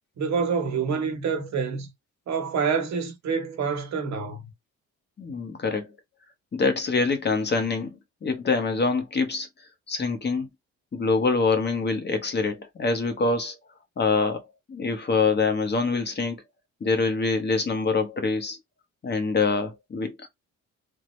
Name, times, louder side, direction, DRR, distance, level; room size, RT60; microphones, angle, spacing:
voice 1, 0.2-1.9 2.3-4.4, right 5 dB, 65° right, 1.2 m, -27 dB
voice 2, 5.2-5.9 6.5-7.9 8.2-9.5 9.9-10.5 10.9-13.6 14.0-14.4 14.7-16.4 16.8-18.6 19.0-20.3, left 4 dB, 35° left, 1.0 m, -25 dB
3.5 x 2.1 x 3.1 m
cardioid pair, 90°, 30 cm